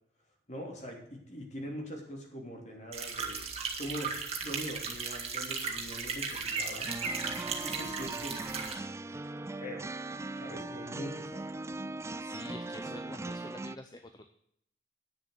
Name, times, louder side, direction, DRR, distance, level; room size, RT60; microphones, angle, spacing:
voice 1, 0.5-3.5 3.8-8.4 9.6-9.9 10.4-11.5, equal, 40° left, 1 dB, 3.2 m, -42 dB
sound 1, 2.9-8.7, right 5 dB, 35° right, 1.9 m, -36 dB
sound 2, 6.9-13.8, right 2 dB, 15° right, 0.3 m, -39 dB
voice 2, 12.2-14.3, left 2 dB, 25° left, 7 dB, 0.7 m, -47 dB
9.7 x 6.9 x 7.9 m, 0.70 s
head